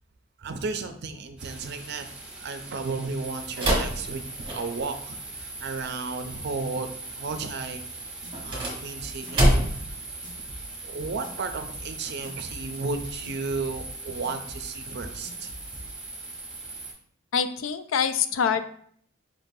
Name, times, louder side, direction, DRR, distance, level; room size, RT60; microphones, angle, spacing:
voice 1, 0.4-2.1 2.4-7.9 8.4-9.7 10.4-10.5 10.8-15.5, right 4 dB, 55° right, 7 dB, 0.5 m, -34 dB
sound 1, 1.4-16.9, right 3 dB, 5° right, 0.9 m, -40 dB
sound 2, 3.6-5.0 8.3-9.9, right 1 dB, 25° right, 1.2 m, -25 dB
sound 3, 8.2-15.9, equal, 20° left, 1.2 m, -44 dB
voice 2, 17.3-18.7, left 7 dB, 75° left, 11 dB, 0.4 m, -25 dB
4.9 x 3.8 x 2.7 m, 0.62 s
head